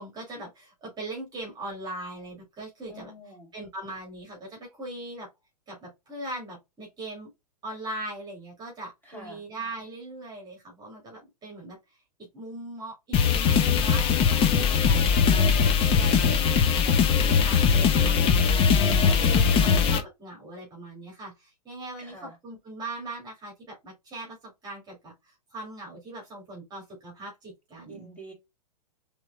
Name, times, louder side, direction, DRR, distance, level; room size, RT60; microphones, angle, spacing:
voice 1, 0.0-3.1 3.5-5.3 5.7-7.3 7.6-11.8 12.3-24.4 24.6-28.1, right 1 dB, 20° right, 2.5 m, -40 dB
voice 2, 2.9-3.5 9.0-9.4 18.9-19.7 22.0-22.4 27.9-28.3, equal, 10° left, 3.2 m, -45 dB
sound 1, 13.1-20.0, left 6 dB, 30° left, 0.9 m, -21 dB
6.0 x 3.6 x 2.3 m
hypercardioid pair, 110°, 20 cm